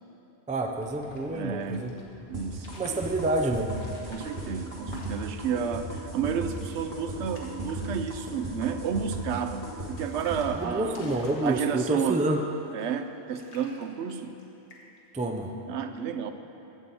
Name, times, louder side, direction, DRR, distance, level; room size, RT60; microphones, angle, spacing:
voice 1, 0.5-1.9 2.7-3.7 10.5-12.5 15.1-15.5, right 2 dB, 10° right, 4 dB, 0.3 m, -28 dB
sound 1, 0.6-11.6, right 1 dB, 40° left, 2.6 m, -55 dB
sound 2, 0.7-2.0 2.5-3.1 3.7-5.5 5.9-6.0 6.2-6.8 7.1-7.8 8.1-8.6 9.3-12.0 12.7-13.1 13.3-14.4 14.7-15.1, left 1 dB, 80° left, 1.6 m, -50 dB
voice 2, 1.3-1.9 2.3-2.8 4.1-11.0 11.4-12.2 12.7-14.3 15.7-16.3, right 7 dB, 85° right, 9 dB, 0.9 m, -31 dB
sound 3, 2.3-10.4, right 2 dB, 30° right, 1.7 m, -36 dB
15.5 x 6.9 x 4.2 m, 2.9 s
omnidirectional pair, 1.1 m